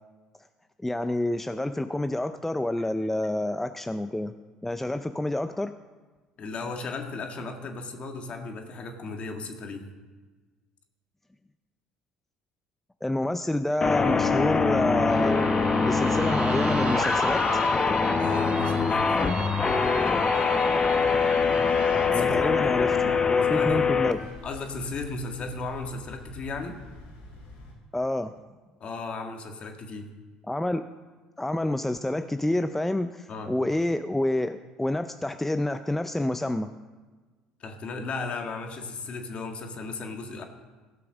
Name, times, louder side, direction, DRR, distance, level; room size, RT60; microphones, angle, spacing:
voice 1, 0.8-4.3 4.6-5.7 13.0-15.5 15.8-17.5 22.1-24.3 27.9-28.3 30.5-30.8 31.4-36.7, left 1 dB, 10° left, 9 dB, 0.5 m, -28 dB
voice 2, 6.4-9.9 18.2-19.2 22.1-22.4 22.6-23.1 23.5-23.8 24.4-26.8 28.8-30.1 33.3-33.5 37.6-40.4, left 3 dB, 45° left, 4 dB, 1.8 m, -35 dB
sound 1, 13.8-24.1, left 5 dB, 30° left, 0.9 m, -23 dB
sound 2, 15.1-22.1, right 7 dB, 50° right, 0.9 m, -38 dB
sound 3, 20.9-27.7, left 2 dB, 70° left, 4.3 m, -45 dB
16.0 x 5.8 x 6.3 m, 1.3 s
hypercardioid pair, 75°, 3 cm